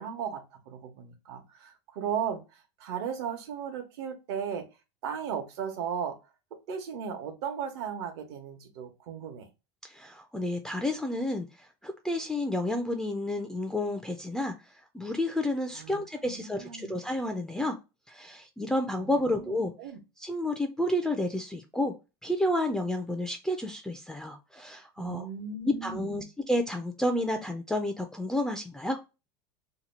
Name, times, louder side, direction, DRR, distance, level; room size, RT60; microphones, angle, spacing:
voice 1, 0.0-4.7 5.0-6.2 6.7-9.5 15.7-16.9 19.0-20.0 25.0-26.3, right 7 dB, 75° right, 5 dB, 1.0 m, -36 dB
voice 2, 9.8-17.8 18.1-19.7 20.2-21.9 22.2-25.3 25.6-29.0, left 1 dB, 5° left, 3 dB, 0.4 m, -30 dB
2.9 x 2.2 x 4.1 m, 0.27 s
supercardioid pair, 120°, 14 cm